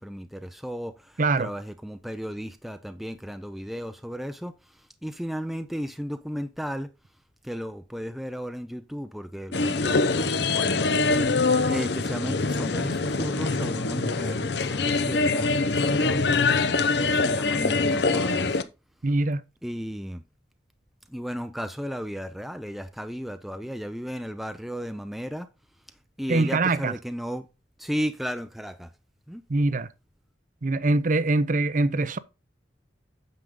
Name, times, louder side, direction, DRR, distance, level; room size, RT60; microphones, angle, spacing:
voice 1, 0.0-6.9 7.4-10.9 11.3-11.4 11.7-16.4 16.9-18.6 19.6-20.2 21.1-25.5 26.2-27.5 27.8-28.9 29.3-29.4, equal, ahead, 0.5 m, -34 dB
voice 2, 1.2-1.5 19.0-19.4 26.3-26.9 29.5-29.9 30.6-32.2, right 2 dB, 45° right, 0.6 m, -23 dB
sound 1, 9.5-18.6, left 3 dB, 65° left, 0.8 m, -24 dB
9.2 x 6.6 x 3.7 m
head